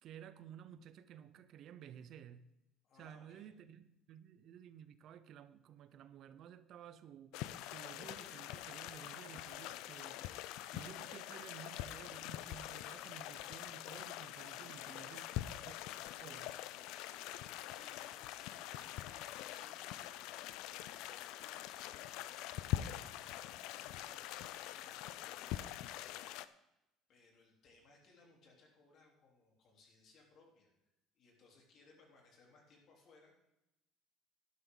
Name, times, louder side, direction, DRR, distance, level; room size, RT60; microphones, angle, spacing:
voice 1, 0.0-2.5 2.9-10.2 10.7-15.3 15.6-15.8 16.2-16.7, right 9 dB, 55° right, 0.7 m, -54 dB
voice 2, 2.8-3.5 17.7-25.7 27.1-30.7 31.1-33.3, left 3 dB, 50° left, 3.6 m, -65 dB
sound 1, 7.3-26.5, left 14 dB, 75° left, 0.5 m, -44 dB
12.0 x 12.0 x 4.0 m
cardioid pair, 130°, 0 cm